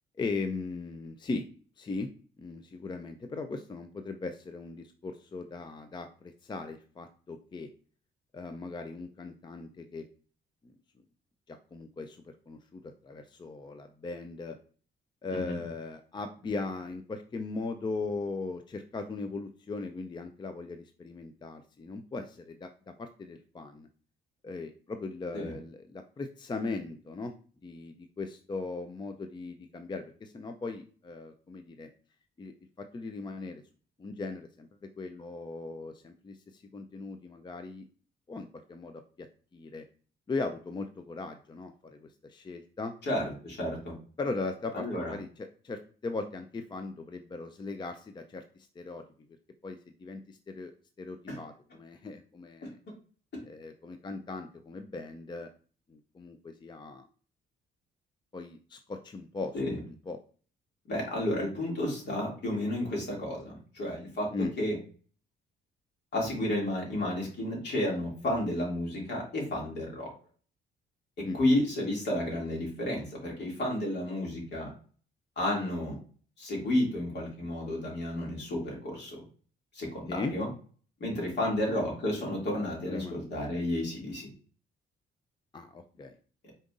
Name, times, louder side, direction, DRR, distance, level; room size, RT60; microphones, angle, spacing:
voice 1, 0.2-1.5 1.8-2.1 2.4-7.7 8.3-10.0 10.6-10.7 11.5-14.6 15.2-23.9 24.4-27.3 27.6-31.9 32.4-33.6 34.0-37.9 38.3-39.3 39.5-39.8 40.3-42.9 44.2-48.4 48.8-49.0 49.6-50.7 51.0-52.8 53.5-55.5 55.9-57.1 58.3-60.2 64.3-64.5 71.2-71.4 80.1-80.3 81.4-81.6 82.9-83.2 85.5-86.2, left 3 dB, 25° left, 7 dB, 0.4 m, -38 dB
voice 2, 43.1-43.9 44.7-45.1 51.3-51.4 52.6-52.7 59.5-59.8 60.9-64.3 64.6-64.8 66.1-70.1 71.3-74.7 75.4-75.9 76.4-79.2 79.7-80.5 81.0-84.3, left 1 dB, 60° left, -2 dB, 2.5 m, -31 dB
5.1 x 3.9 x 2.5 m, 0.41 s
cardioid pair, 90°, 20 cm